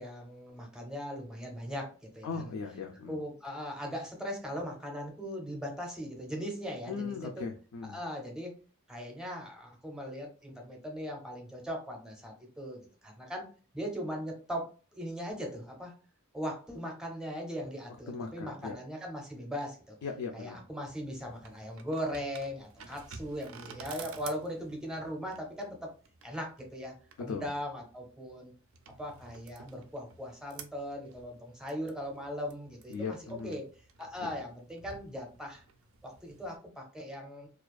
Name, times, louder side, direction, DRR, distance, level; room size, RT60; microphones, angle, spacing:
voice 1, 0.0-2.4 3.1-7.4 7.8-8.5 8.9-13.5 13.7-15.9 16.3-20.0 20.3-25.9 26.2-28.5 29.0-33.2 33.4-33.6 34.0-35.6 36.0-37.5, equal, 5° right, 1 dB, 0.5 m, -39 dB
voice 2, 2.2-3.2 6.9-8.0 18.1-18.8 20.0-20.6 27.2-27.5 32.9-33.6 34.2-34.3, left 5 dB, 85° left, 4 dB, 0.4 m, -38 dB
sound 1, 20.9-36.6, right 5 dB, 65° right, 0.4 m, -52 dB
2.3 x 2.3 x 2.3 m, 0.36 s
head